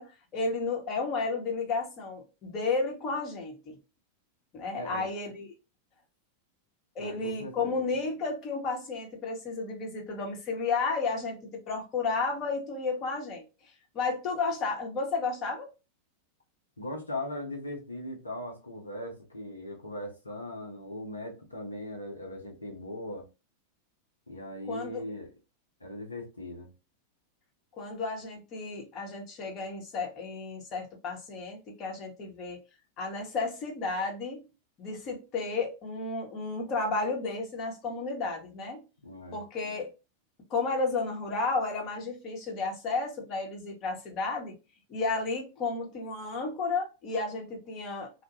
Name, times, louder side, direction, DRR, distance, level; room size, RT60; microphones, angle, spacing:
voice 1, 0.0-3.8 4.5-5.5 6.9-13.5 13.9-15.7 24.7-25.0 27.8-32.6 33.0-34.4 34.8-38.8 39.3-39.9 40.5-44.5 44.9-48.1, left 3 dB, 35° left, 0.8 m, -32 dB
voice 2, 4.8-5.1 7.0-7.9 16.8-23.3 24.3-25.3 25.8-26.7 39.0-39.4, left 1 dB, 80° left, 0.6 m, -39 dB
2.3 x 2.0 x 2.8 m
figure-of-eight pair, 90°, 0 cm